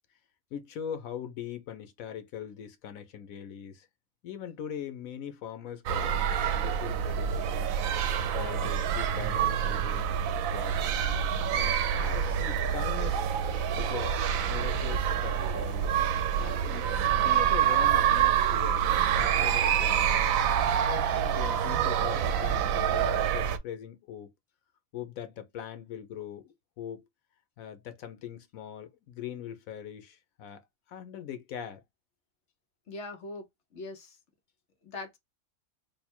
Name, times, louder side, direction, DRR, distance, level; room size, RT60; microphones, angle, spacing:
voice 1, 0.5-3.9 4.2-7.7 8.3-10.1 10.5-11.1 11.5-13.2 13.8-14.2 14.5-15.9 16.4-18.9 19.2-20.2 20.7-24.3 24.9-27.0 27.6-30.6 30.9-31.8, left 8 dB, 85° left, 1.2 m, -41 dB
sound 1, 5.9-23.6, right 9 dB, 80° right, 1.0 m, -27 dB
voice 2, 32.9-33.4 33.7-34.2 34.8-35.2, left 2 dB, 60° left, 1.2 m, -41 dB
3.5 x 2.1 x 4.3 m
omnidirectional pair, 1.4 m